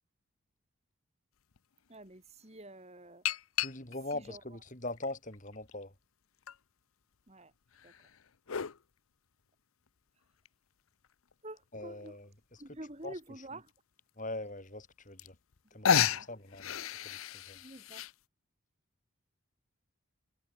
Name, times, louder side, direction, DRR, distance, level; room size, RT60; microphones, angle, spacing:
sound 1, 1.5-1.6 3.3-4.1 4.8-5.8 6.5-6.6 7.7-8.8 10.5-10.6 11.0-11.1 11.3-11.4 11.8-12.1 13.1-13.2 13.7-13.8 14.9-15.0 15.2-15.6 15.8-18.1, left 8 dB, 75° left, 0.7 m, -32 dB
voice 1, 1.9-3.3 4.1-4.4 7.3-7.5 7.8-8.1 11.4-12.2 12.6-13.7 16.1-16.3 17.5-18.0, right 1 dB, 30° right, 3.0 m, -48 dB
voice 2, 3.6-5.9 11.7-12.3 13.0-13.1 14.2-15.4 15.7-17.6, left 2 dB, 35° left, 4.8 m, -42 dB
head